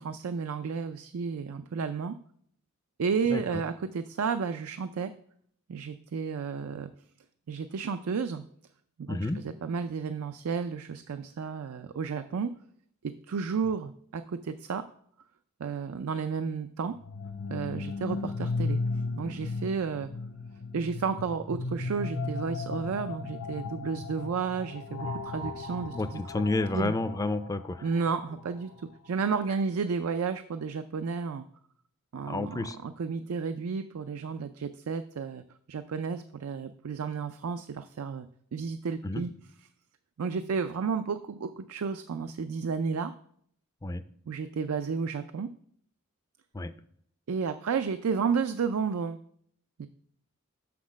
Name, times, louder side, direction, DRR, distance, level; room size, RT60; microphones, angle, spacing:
voice 1, 0.0-2.2 3.0-5.1 5.7-6.9 7.5-8.4 9.1-12.5 13.0-14.9 15.6-17.0 17.5-18.8 19.1-20.1 20.7-26.2 26.7-26.9 27.8-31.4 32.1-35.4 35.7-38.3 38.5-39.3 40.2-43.1 44.3-45.5 47.3-49.2 49.8-49.9, right 5 dB, 85° right, 10 dB, 0.4 m, -32 dB
voice 2, 3.3-3.6 9.1-9.4 25.9-27.9 32.3-32.8 39.0-39.2 43.8-44.0 46.5-46.7, left 2 dB, 15° left, 11 dB, 0.4 m, -30 dB
sound 1, 16.9-28.7, left 3 dB, 80° left, 0.7 m, -36 dB
6.2 x 6.0 x 6.2 m, 0.65 s
head